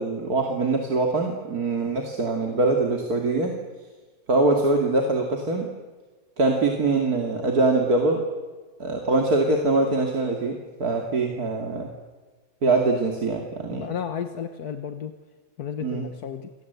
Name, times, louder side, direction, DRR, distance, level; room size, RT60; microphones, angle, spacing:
voice 1, 0.0-3.5 4.3-5.7 6.4-8.2 8.8-11.9 12.6-13.9 15.8-16.1, right 3 dB, 80° right, 2 dB, 3.1 m, -23 dB
voice 2, 13.7-15.2 15.6-16.5, left 8 dB, 85° left, 8 dB, 1.8 m, -33 dB
29.0 x 23.5 x 8.2 m, 1.3 s
omnidirectional pair, 1.6 m